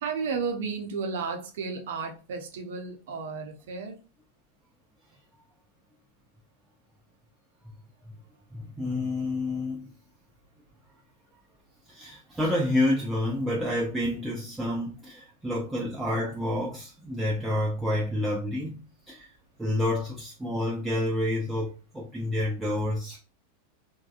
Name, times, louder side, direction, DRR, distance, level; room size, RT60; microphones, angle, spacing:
voice 1, 0.0-4.0, right 5 dB, 55° right, 0.7 m, -33 dB
voice 2, 8.5-9.9 11.9-19.3 19.6-23.2, left 1 dB, 10° right, 0.6 m, -29 dB
3.4 x 2.1 x 2.4 m
figure-of-eight pair, 90°, 0 cm